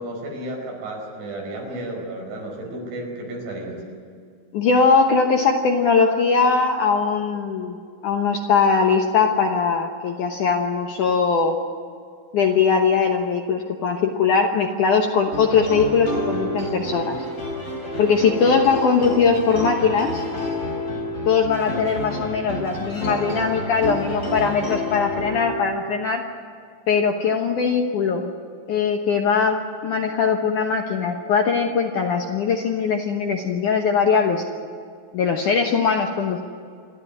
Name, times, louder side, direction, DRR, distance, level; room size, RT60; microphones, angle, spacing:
voice 1, 0.0-3.8, right 1 dB, 90° right, 0 dB, 7.6 m, -32 dB
voice 2, 4.5-7.8 8.0-11.6 12.3-17.2 18.0-20.2 21.3-26.2 26.9-28.3 28.7-34.4 35.1-36.4, left 5 dB, 70° left, 3 dB, 1.9 m, -20 dB
sound 1, 15.3-25.8, equal, 15° left, 3.9 m, -29 dB
28.5 x 12.5 x 9.9 m, 2.3 s
omnidirectional pair, 5.2 m